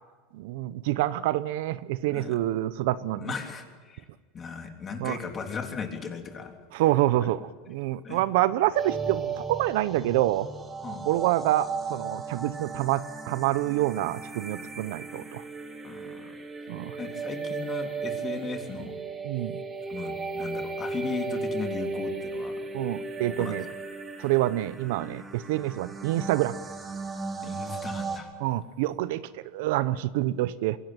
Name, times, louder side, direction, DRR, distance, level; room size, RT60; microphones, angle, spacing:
voice 1, 0.3-3.3 5.0-5.2 6.7-7.4 7.7-10.5 11.1-15.4 16.7-17.0 19.2-19.6 22.7-23.6 24.2-26.6 28.4-30.8, right 15 dB, 70° right, 16 dB, 0.8 m, -27 dB
voice 2, 3.1-4.0 4.3-6.6 7.2-7.3 8.0-8.2 10.8-11.0 15.8-16.3 17.0-19.0 19.9-22.5 23.4-23.6 27.4-28.3, left 5 dB, 25° left, 4 dB, 3.2 m, -36 dB
sound 1, 8.7-28.2, right 4 dB, 15° right, 2.7 m, -36 dB
23.0 x 17.0 x 9.2 m, 1.5 s
supercardioid pair, 135°, 0 cm